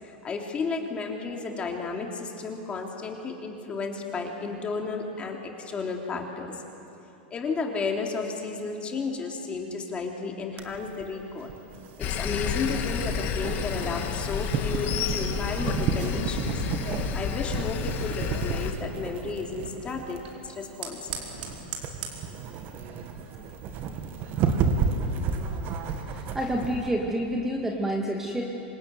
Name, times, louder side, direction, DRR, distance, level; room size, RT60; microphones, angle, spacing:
voice 1, 0.0-6.6 7.3-11.6 12.0-16.6 17.1-21.2, left 4 dB, 20° left, 1 dB, 3.2 m, -33 dB
sound 1, 10.6-26.9, right 5 dB, 40° right, 2.3 m, -32 dB
Sawing, 12.0-18.7, left 7 dB, 35° left, 1.8 m, -30 dB
Fire, 17.9-25.1, right 7 dB, 60° right, 4.5 m, -44 dB
voice 2, 26.3-28.4, right 1 dB, 5° right, 0 dB, 2.1 m, -28 dB
26.0 x 21.5 x 9.5 m, 2.9 s
supercardioid pair, 140°, 6 cm